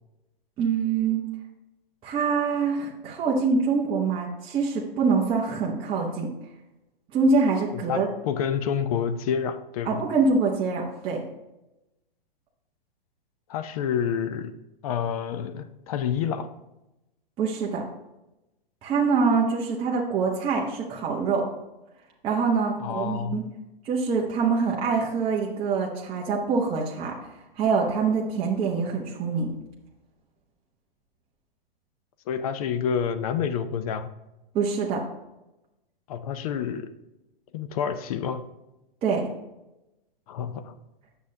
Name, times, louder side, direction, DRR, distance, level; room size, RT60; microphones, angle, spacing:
voice 1, 0.6-1.2 2.0-6.3 7.1-8.1 9.9-11.2 17.4-17.8 18.8-21.5 22.2-23.4 23.8-27.2 27.6-29.5 34.5-35.0 39.0-39.3, right 4 dB, 20° right, -3 dB, 0.8 m, -25 dB
voice 2, 7.7-10.1 13.5-14.5 14.8-16.5 22.8-23.5 32.3-34.1 36.1-36.9 37.5-38.5 40.3-40.8, left 7 dB, 40° left, 11 dB, 0.5 m, -28 dB
8.7 x 6.6 x 2.7 m, 0.97 s
hypercardioid pair, 145°, 29 cm